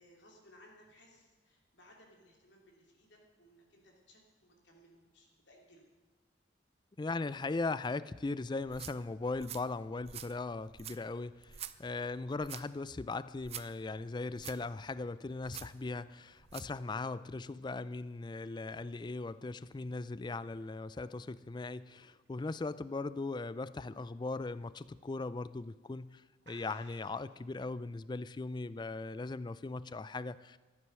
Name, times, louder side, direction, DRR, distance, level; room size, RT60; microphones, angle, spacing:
voice 1, 0.0-5.8, equal, 70° left, 0 dB, 3.0 m, -62 dB
voice 2, 7.0-30.6, left 3 dB, 25° left, 16 dB, 0.4 m, -39 dB
sound 1, 8.6-16.8, right 10 dB, 35° right, 0.5 m, -50 dB
sound 2, 20.5-23.4 23.8-24.1 24.5-24.6 25.4-25.6 25.9-26.0 26.4-27.4, right 3 dB, 70° right, 2.3 m, -62 dB
14.0 x 11.0 x 6.2 m, 1.3 s
head